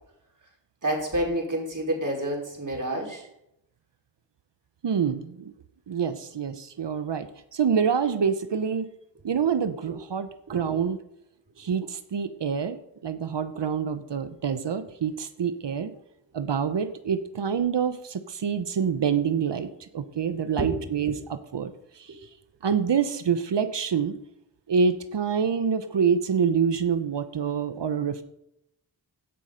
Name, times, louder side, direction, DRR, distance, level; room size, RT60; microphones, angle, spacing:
voice 1, 0.8-3.3 9.9-10.0 10.5-10.7 20.6-20.8 22.1-22.2, right 1 dB, 40° right, -1 dB, 4.7 m, -29 dB
voice 2, 4.8-5.5 5.9-7.3 7.5-8.9 9.2-11.0 11.6-15.9 16.3-21.7 22.0-22.1 22.6-24.1 24.7-28.2, right 6 dB, 65° right, 11 dB, 1.0 m, -26 dB
16.5 x 7.6 x 5.3 m, 0.82 s
cardioid pair, 45°, 45 cm